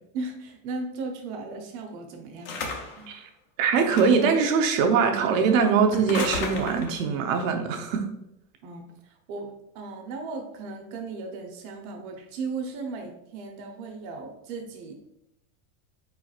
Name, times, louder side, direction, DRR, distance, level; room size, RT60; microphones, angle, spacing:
voice 1, 0.1-3.1 8.6-14.9, right 3 dB, 40° right, 3 dB, 0.8 m, -36 dB
sound 1, 2.4-3.1 3.8-4.3 5.9-7.0, left 4 dB, 25° left, 0.4 m, -33 dB
voice 2, 3.6-8.1, right 5 dB, 70° right, 5 dB, 0.9 m, -22 dB
4.6 x 4.3 x 2.4 m, 0.82 s
supercardioid pair, 165°, 41 cm